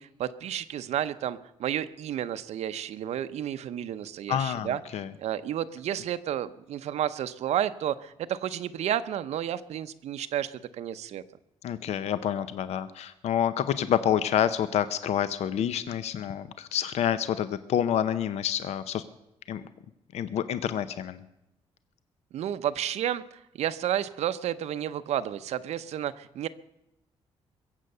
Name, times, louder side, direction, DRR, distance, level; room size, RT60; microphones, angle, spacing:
voice 1, 0.0-4.8 5.2-11.2 22.3-23.2 23.5-26.5, right 10 dB, 80° right, 12 dB, 0.7 m, -31 dB
voice 2, 4.3-5.1 11.6-19.0 19.5-19.6 20.1-21.2, left 9 dB, 75° left, 13 dB, 0.7 m, -28 dB
22.5 x 7.7 x 6.7 m, 0.87 s
cardioid pair, 150°, 11 cm